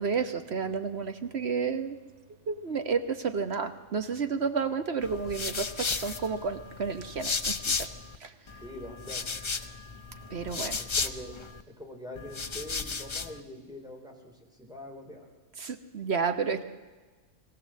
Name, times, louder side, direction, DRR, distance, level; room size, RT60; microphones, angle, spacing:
voice 1, 0.0-2.0 2.5-7.9 8.2-8.3 10.3-10.8 15.6-16.6, right 5 dB, 50° right, 9 dB, 1.1 m, -31 dB
sound 1, 5.0-8.2 8.5-11.6 12.2-13.4, left 4 dB, 40° left, 0.4 m, -34 dB
voice 2, 8.6-9.2 10.8-11.3 11.8-14.3 14.6-15.3, left 1 dB, 5° right, 0 dB, 3.5 m, -43 dB
21.5 x 16.0 x 7.5 m, 1.3 s
omnidirectional pair, 1.5 m